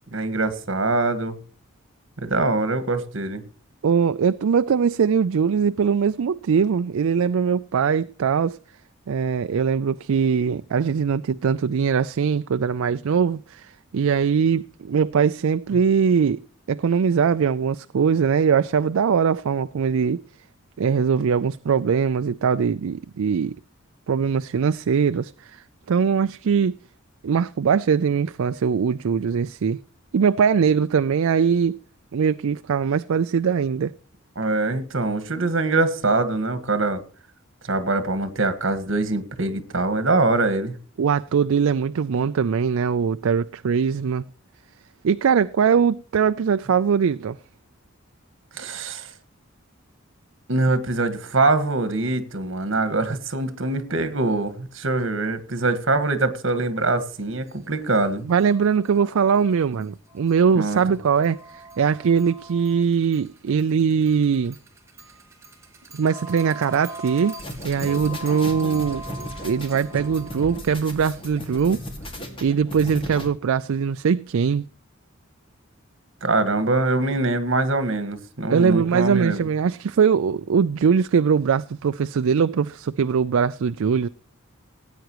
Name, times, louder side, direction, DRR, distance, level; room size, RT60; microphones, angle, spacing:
voice 1, 0.1-1.4 2.2-3.4 34.3-37.0 37.6-40.8 48.5-49.1 50.5-58.3 60.5-60.8 76.2-79.5, right 2 dB, 65° right, 1.6 m, -23 dB
voice 2, 3.8-8.6 9.1-16.4 16.7-20.2 20.8-23.5 24.1-25.6 25.9-26.8 27.2-29.8 30.1-31.8 32.1-33.9 41.0-44.2 45.0-47.4 58.3-64.6 65.9-67.4 67.6-69.0 69.4-71.8 72.4-74.7 78.5-84.1, right 6 dB, 80° right, 0.4 m, -21 dB
sound 1, 57.0-57.1 57.5-57.6 57.9-58.0 58.3-72.2, right 1 dB, 15° right, 2.3 m, -42 dB
sound 2, 67.4-73.3, equal, 25° left, 2.1 m, -35 dB
18.0 x 9.2 x 3.0 m
head